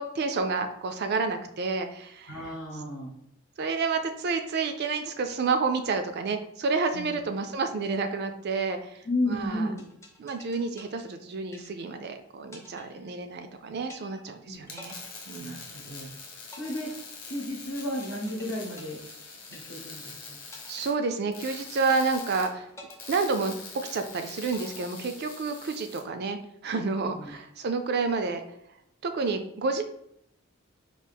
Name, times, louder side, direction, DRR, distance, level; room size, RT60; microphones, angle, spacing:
voice 1, 0.0-2.5 3.6-9.0 9.3-9.7 10.2-14.9 15.3-15.7 20.7-22.7 23.1-28.4 29.0-29.8, right 4 dB, 50° right, 7 dB, 0.4 m, -29 dB
voice 2, 2.3-3.1 6.9-7.2 9.0-9.9 14.4-14.6 15.4-16.1 16.6-16.9 17.2-19.0 19.5-20.4 27.0-27.3, left 1 dB, 70° left, -2 dB, 0.9 m, -33 dB
sound 1, 9.8-12.1 12.5-13.5 13.9-14.4 14.8-16.0 16.5-20.1 20.5-21.5 21.9-22.4 22.8-24.0 24.5-25.5, left 2 dB, 15° left, 0.5 m, -51 dB
sound 2, 14.5-26.0, left 4 dB, 40° left, 0.9 m, -44 dB
4.6 x 2.4 x 3.4 m, 0.75 s
head